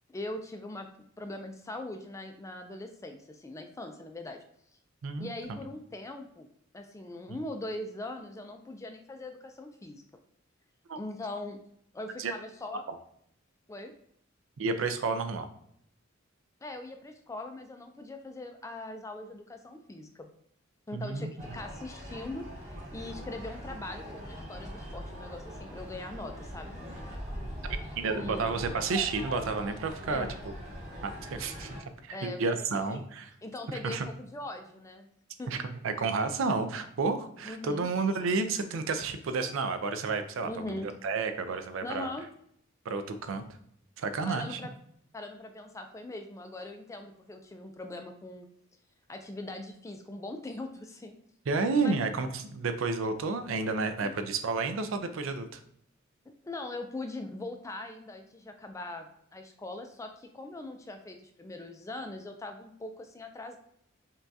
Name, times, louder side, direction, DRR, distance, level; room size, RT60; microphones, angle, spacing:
voice 1, 0.1-0.9 1.2-4.4 5.2-6.5 6.7-10.0 11.0-11.6 11.9-12.8 13.7-13.9 16.6-20.3 20.9-26.8 28.1-28.5 30.1-30.4 32.1-32.4 32.9-33.0 33.4-35.1 35.4-35.5 37.4-37.9 40.4-40.9 41.8-42.3 44.3-44.7 45.1-48.5 49.1-51.1 51.8-52.0 54.0-54.1 56.4-63.6, left 2 dB, 15° left, 5 dB, 0.3 m, -41 dB
voice 2, 5.0-5.6 10.9-11.0 12.2-12.3 12.9-13.0 14.6-15.5 20.9-21.3 27.7-27.8 28.0-30.3 31.0-31.8 32.0-33.3 33.8-34.1 35.5-42.1 42.9-43.4 44.0-44.6 51.5-55.6, right 4 dB, 70° right, 9 dB, 0.4 m, -31 dB
sound 1, 21.4-31.8, equal, 35° right, 1.5 m, -41 dB
5.4 x 2.3 x 2.7 m, 0.70 s
head